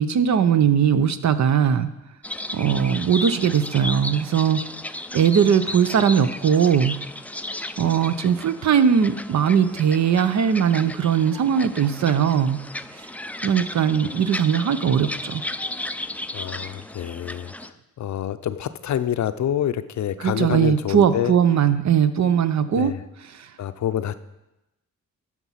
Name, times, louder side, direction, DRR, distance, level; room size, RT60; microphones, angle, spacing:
voice 1, 0.0-1.9 2.5-4.6 5.1-7.0 7.8-12.6 13.4-15.4 20.2-22.9 23.3-23.5, right 8 dB, 60° right, 12 dB, 0.7 m, -20 dB
sound 1, 2.2-17.7, left 1 dB, 5° left, 0.4 m, -34 dB
voice 2, 16.3-21.3 22.7-23.0 23.6-24.1, left 10 dB, 60° left, 13 dB, 0.5 m, -27 dB
12.0 x 4.6 x 5.7 m, 0.95 s
cardioid pair, 65°, 32 cm